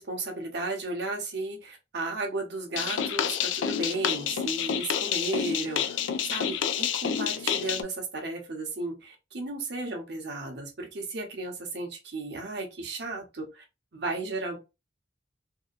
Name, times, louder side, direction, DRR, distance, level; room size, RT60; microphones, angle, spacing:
voice 1, 0.0-13.6 13.9-14.6, right 2 dB, 60° right, 0.8 m, -34 dB
sound 1, 2.7-7.8, left 8 dB, 75° left, 0.3 m, -29 dB
2.7 x 2.2 x 2.4 m
head